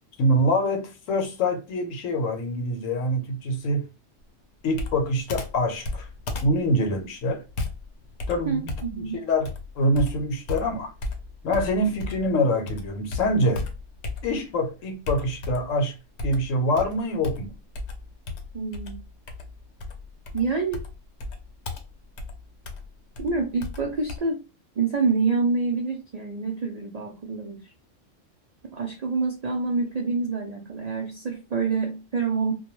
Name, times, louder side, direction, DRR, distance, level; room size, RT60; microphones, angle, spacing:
voice 1, 0.2-3.8 4.6-6.1 6.4-7.4 8.3-8.7 9.1-10.9 11.4-13.7 14.2-15.9 16.2-17.5, equal, 90° left, 1.1 m, -25 dB
Computer keyboard, 4.8-12.4 12.7-14.6 15.1-15.8 16.2-24.2, left 3 dB, 65° left, 0.8 m, -35 dB
voice 2, 8.5-9.2 18.5-19.0 20.3-20.8 23.2-24.4 24.8-27.7 28.7-32.5, right 4 dB, 75° right, 0.3 m, -27 dB
2.2 x 2.2 x 3.0 m
omnidirectional pair, 1.3 m